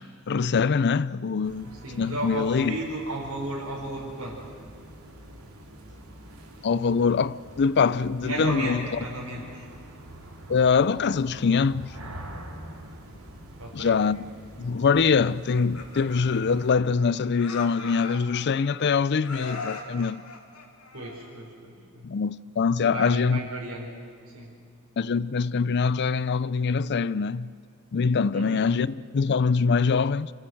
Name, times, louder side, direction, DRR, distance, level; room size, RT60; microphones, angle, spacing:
voice 1, 0.3-1.7 2.0-2.8 6.6-8.9 10.5-11.9 13.7-14.2 14.6-20.2 22.0-23.4 25.0-27.5 27.9-30.3, left 5 dB, 50° left, 0.5 m, -24 dB
sound 1, 1.4-16.7, right 1 dB, 85° right, 3.3 m, -45 dB
voice 2, 1.8-4.4 8.2-9.6 13.6-13.9 20.9-22.0 22.9-23.9 24.3-24.5 28.3-28.6, right 1 dB, 70° right, 4.1 m, -34 dB
Laughter, 15.4-17.0 17.4-18.8 19.2-21.5, left 4 dB, 85° left, 2.4 m, -40 dB
26.0 x 15.5 x 7.8 m
head